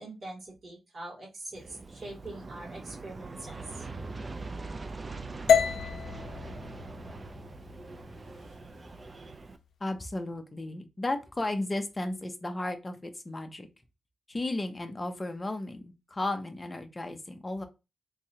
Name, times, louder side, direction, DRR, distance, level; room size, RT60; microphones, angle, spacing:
voice 1, 0.0-3.9, right 2 dB, 50° right, -6 dB, 2.4 m, -43 dB
Aircraft, 1.5-9.6, right 3 dB, 30° right, 0.4 m, -42 dB
sound 1, 5.5-9.6, left 7 dB, 85° left, 0.5 m, -30 dB
voice 2, 9.8-13.7 14.3-17.7, left 2 dB, 20° left, 7 dB, 0.6 m, -34 dB
3.6 x 3.0 x 2.8 m, 0.27 s
wide cardioid pair, 120°, 0 cm